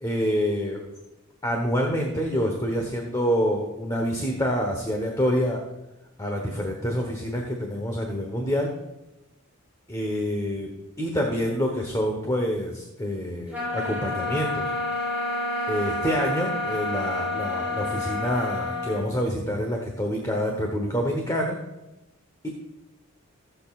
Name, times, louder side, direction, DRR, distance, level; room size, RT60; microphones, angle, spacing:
voice 1, 0.0-0.8 1.4-5.6 6.2-8.7 9.9-10.7 11.0-14.7 15.7-21.6 22.4-22.5, equal, 15° left, 2 dB, 1.1 m, -27 dB
sound 1, 13.5-19.1, left 2 dB, 5° right, 3.7 m, -29 dB
16.0 x 7.9 x 2.5 m, 1.0 s
head